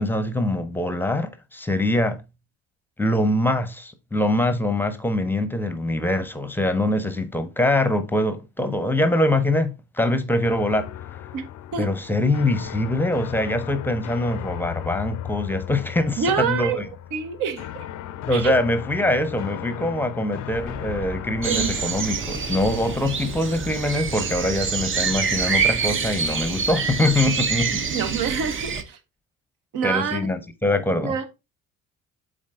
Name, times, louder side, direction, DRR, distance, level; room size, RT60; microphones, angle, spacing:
voice 1, 0.0-2.2 3.0-10.9 11.8-16.8 18.3-27.8 29.8-31.1, left 1 dB, 5° left, 0.9 m, -23 dB
sound 1, 10.4-26.3, left 12 dB, 45° left, 0.6 m, -37 dB
voice 2, 16.2-17.9 18.3-18.6 21.5-22.0 27.9-29.0 29.7-30.2 31.0-31.3, right 6 dB, 55° right, 1.1 m, -27 dB
sound 2, 20.5-25.7, right 1 dB, 15° right, 1.4 m, -41 dB
sound 3, 21.4-28.8, right 5 dB, 30° right, 0.8 m, -26 dB
7.4 x 3.9 x 3.6 m
figure-of-eight pair, 50°, 40 cm